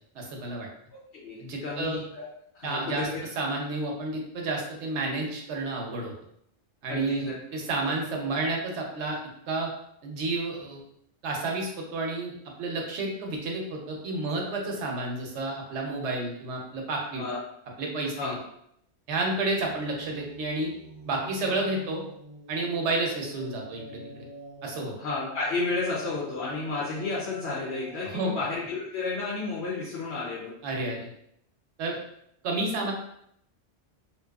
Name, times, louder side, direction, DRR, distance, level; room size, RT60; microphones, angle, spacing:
voice 1, 0.1-0.7 1.4-2.0 2.6-3.1 3.4-6.1 6.8-9.2 9.5-9.7 10.0-10.8 11.2-12.3 12.6-17.2 17.8-18.4 19.1-20.7 21.1-22.0 22.5-24.3 24.6-24.9 28.0-28.3 30.6-31.1 31.8-32.0 32.4-32.9, right 2 dB, 80° right, 0 dB, 0.9 m, -30 dB
voice 2, 1.1-2.2 2.5-3.2 6.9-7.3 7.8-7.9 17.2-17.4 18.2-18.4 25.0-30.6, left 3 dB, 70° left, -5 dB, 0.9 m, -32 dB
sound 1, 19.5-28.6, right 2 dB, 25° right, 0.5 m, -47 dB
2.7 x 2.3 x 2.3 m, 0.72 s
omnidirectional pair, 1.1 m